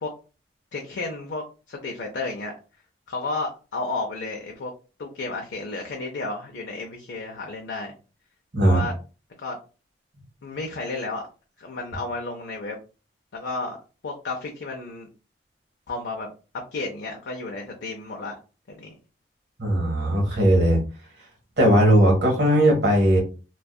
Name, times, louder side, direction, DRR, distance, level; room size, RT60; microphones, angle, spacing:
voice 1, 0.7-2.5 3.1-4.7 5.0-7.9 8.6-8.9 9.4-9.6 10.4-11.2 11.6-12.8 13.3-13.8 14.0-15.1 15.9-16.3 16.7-18.4 18.7-19.0, left 3 dB, 80° left, 0 dB, 0.5 m, -32 dB
voice 2, 19.6-20.8 21.6-23.2, right 1 dB, 70° right, -1 dB, 1.1 m, -18 dB
2.6 x 2.3 x 2.2 m, 0.34 s
head